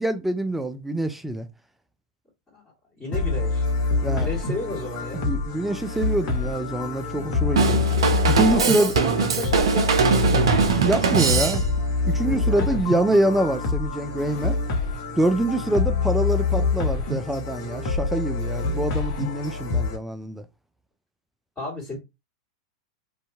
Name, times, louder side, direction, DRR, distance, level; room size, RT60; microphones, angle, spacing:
voice 1, 0.0-1.5 4.0-4.3 5.1-7.9 8.3-9.0 10.8-11.6 12.0-14.6 15.2-20.4, right 1 dB, 5° right, 0.3 m, -25 dB
voice 2, 2.9-3.7 4.0-5.2 8.5-10.6 12.5-12.8 21.6-22.0, left 2 dB, 15° left, 1.6 m, -32 dB
sound 1, 3.1-20.0, left 4 dB, 50° left, 0.8 m, -26 dB
Drum kit / Drum, 7.6-11.9, right 5 dB, 65° right, 0.5 m, -21 dB
2.6 x 2.2 x 2.6 m
figure-of-eight pair, 95°, 3 cm